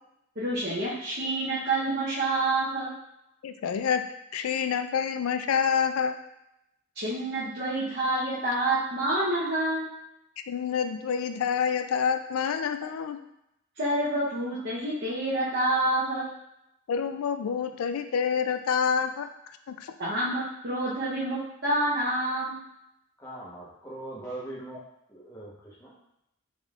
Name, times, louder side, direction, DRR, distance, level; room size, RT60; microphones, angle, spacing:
voice 1, 0.4-2.9 7.0-9.9 13.8-16.3 20.0-22.6, right 1 dB, 50° right, -9 dB, 0.8 m, -28 dB
voice 2, 3.4-4.1 4.3-6.1 10.5-13.2 16.9-19.9, left 7 dB, 90° left, 9 dB, 0.3 m, -27 dB
voice 3, 23.2-24.8 25.1-25.9, right 1 dB, 15° left, -7 dB, 1.0 m, -41 dB
4.2 x 3.5 x 2.4 m, 0.83 s
head